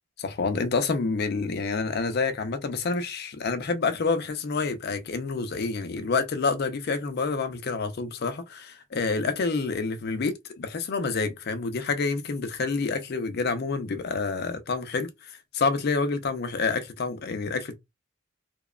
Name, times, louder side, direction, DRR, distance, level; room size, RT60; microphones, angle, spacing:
voice 1, 0.2-17.8, left 4 dB, 55° left, 0.5 m, -28 dB
2.8 x 2.1 x 2.3 m
head